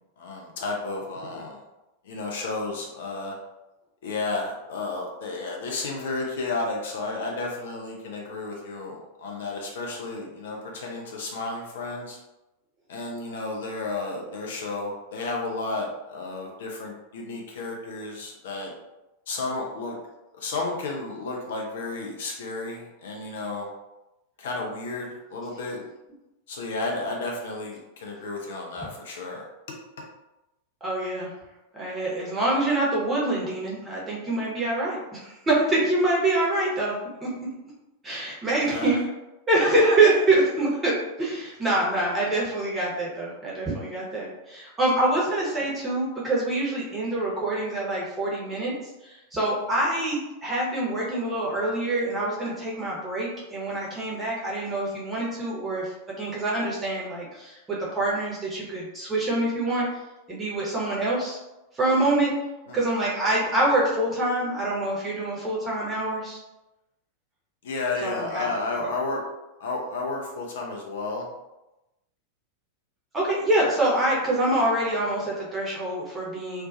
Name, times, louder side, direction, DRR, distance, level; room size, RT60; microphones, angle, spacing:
voice 1, 0.2-1.6 2.1-3.3 4.0-12.2 12.9-18.7 19.3-20.0 20.3-23.7 24.4-25.8 26.5-29.5 38.6-38.9 62.7-62.8 67.6-69.2 69.6-71.3, left 3 dB, 60° left, -1 dB, 0.5 m, -32 dB
voice 2, 30.8-31.3 31.7-37.3 38.0-39.0 39.5-48.7 49.0-59.9 60.3-61.4 61.7-62.3 62.7-66.4 68.0-68.5 68.8-68.9 73.1-76.7, right 2 dB, 15° right, -5 dB, 0.9 m, -25 dB
2.4 x 2.2 x 2.5 m, 0.98 s
figure-of-eight pair, 90°, 0 cm